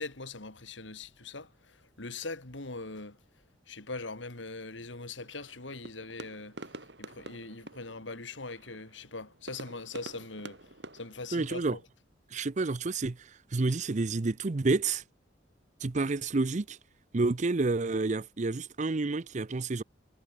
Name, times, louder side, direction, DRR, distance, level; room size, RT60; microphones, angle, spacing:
voice 1, 0.0-3.2 3.7-6.5 7.0-10.6 10.9-11.8, left 3 dB, 85° left, 2.9 m, -41 dB
sound 1, 5.2-11.8, right 2 dB, 65° right, 5.1 m, -49 dB
voice 2, 11.3-11.8 12.3-15.0 15.8-16.8 17.1-19.8, right 3 dB, 40° right, 0.6 m, -29 dB
head